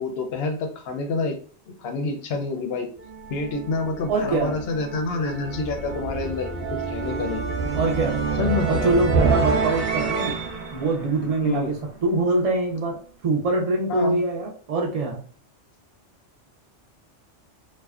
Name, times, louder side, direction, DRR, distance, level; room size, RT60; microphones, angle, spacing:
voice 1, 0.0-1.4 1.7-2.9 3.3-7.4 8.4-8.9 11.4-11.7 13.9-14.2, left 3 dB, 65° left, 4 dB, 0.7 m, -28 dB
sound 1, 3.0-12.0, right 4 dB, 50° right, 0.7 m, -27 dB
voice 2, 4.1-4.6 7.7-8.2 8.7-10.4 10.7-15.3, right 2 dB, 65° right, 0 dB, 0.3 m, -24 dB
2.5 x 2.1 x 2.3 m, 0.43 s
omnidirectional pair, 1.2 m